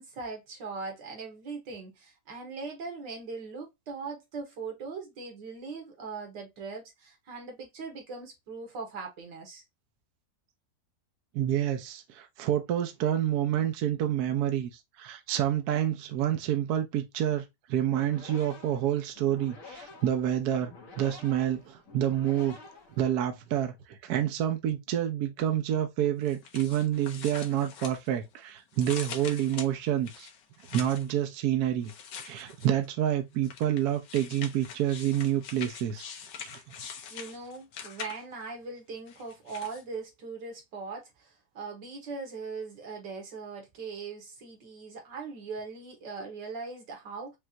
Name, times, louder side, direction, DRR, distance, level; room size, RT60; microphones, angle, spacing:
voice 1, 0.0-9.6 37.1-47.4, right 4 dB, 90° right, 2.0 m, -40 dB
voice 2, 11.3-14.7 15.0-20.7 21.0-22.6 23.0-30.3 30.7-31.9 32.2-36.1, right 11 dB, 65° right, 1.2 m, -28 dB
sound 1, 17.7-23.4, left 4 dB, 50° left, 1.5 m, -49 dB
sound 2, 26.3-28.4 28.7-31.1 31.8-32.9 33.4-38.4 39.1-39.8, left 7 dB, 85° left, 1.4 m, -43 dB
5.3 x 2.5 x 2.8 m
omnidirectional pair, 1.9 m